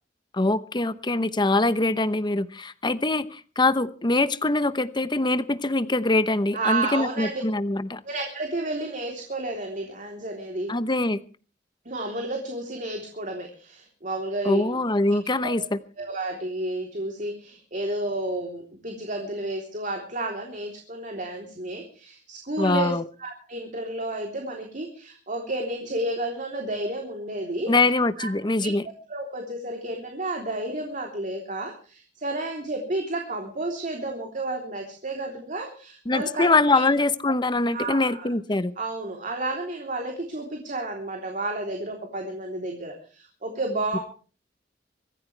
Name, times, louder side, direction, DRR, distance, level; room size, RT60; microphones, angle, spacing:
voice 1, 0.3-8.0 10.7-11.2 14.4-15.8 22.6-23.0 27.7-28.8 36.1-38.7 43.9-44.0, left 2 dB, 25° left, 14 dB, 0.9 m, -23 dB
voice 2, 6.5-7.4 8.0-10.7 11.8-14.8 15.4-15.5 16.0-27.7 28.2-28.3 28.6-28.7 29.1-36.8 37.7-38.3 38.8-44.0, right 2 dB, 45° right, 2 dB, 3.5 m, -31 dB
25.0 x 14.5 x 3.3 m, 0.38 s
head